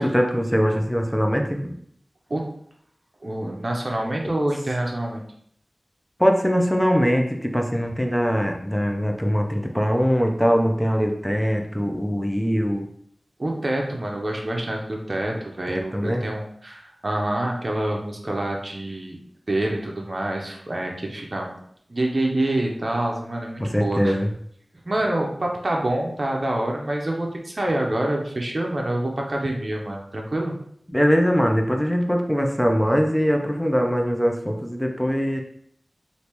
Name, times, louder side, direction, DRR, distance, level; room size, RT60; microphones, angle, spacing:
voice 1, 0.0-1.7 6.2-12.9 15.7-16.3 23.6-24.3 30.9-35.4, equal, ahead, 2 dB, 0.5 m, -22 dB
voice 2, 3.2-5.2 13.4-19.2 19.5-21.6 21.9-24.2 24.8-30.5, right 1 dB, 50° right, 0 dB, 0.6 m, -26 dB
3.4 x 2.6 x 2.9 m, 0.67 s
wide cardioid pair, 60°, 0 cm